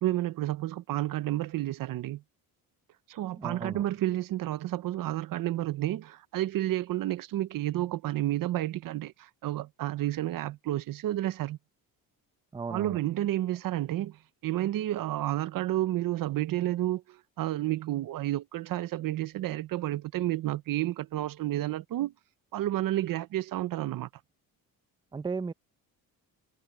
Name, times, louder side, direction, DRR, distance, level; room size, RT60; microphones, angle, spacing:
voice 1, 0.0-2.2 3.1-11.6 12.7-22.1 22.5-24.1, right 14 dB, 65° right, 0.8 m, -31 dB
voice 2, 3.3-3.8 12.5-13.0 25.1-25.5, right 4 dB, 10° right, 0.6 m, -35 dB
cardioid pair, 155°, 36 cm